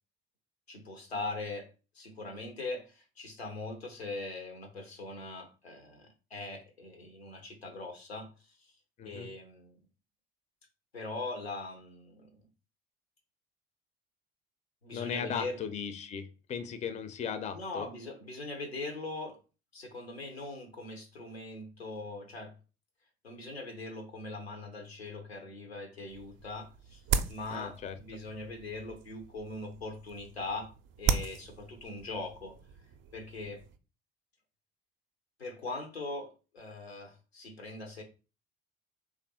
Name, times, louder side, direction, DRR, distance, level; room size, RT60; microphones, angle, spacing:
voice 1, 0.7-1.7 1.9-8.7 9.0-9.8 10.9-12.4 14.8-15.6 17.5-19.4 19.7-22.5 23.2-27.0 27.3-30.7 31.0-32.6 33.1-33.6 35.4-38.0, left 2 dB, 90° left, 5 dB, 0.6 m, -41 dB
voice 2, 14.9-17.9 27.5-27.9, left 7 dB, 25° left, 10 dB, 0.4 m, -37 dB
sound 1, 26.1-33.8, right 6 dB, 40° right, 0.4 m, -37 dB
3.1 x 2.4 x 2.8 m, 0.32 s
figure-of-eight pair, 55°, 30 cm